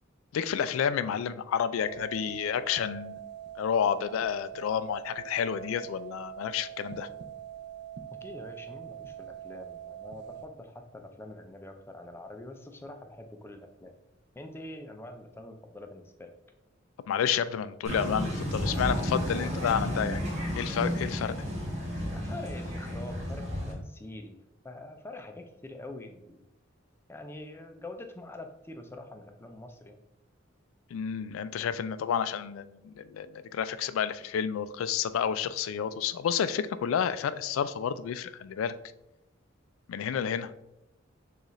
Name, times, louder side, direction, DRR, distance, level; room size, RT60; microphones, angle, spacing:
voice 1, 0.3-3.3 3.6-7.1 17.1-20.2 20.5-21.3 30.9-38.7 39.9-40.5, left 8 dB, 85° left, 14 dB, 0.3 m, -30 dB
sound 1, 1.9-10.5, right 11 dB, 60° right, 0.5 m, -43 dB
voice 2, 8.1-13.9 14.3-16.3 22.1-24.4 24.6-26.4 27.1-30.0, left 2 dB, 10° left, 5 dB, 0.4 m, -45 dB
sound 2, 17.8-23.7, equal, 35° right, 1.2 m, -32 dB
6.4 x 2.4 x 3.1 m, 0.87 s
head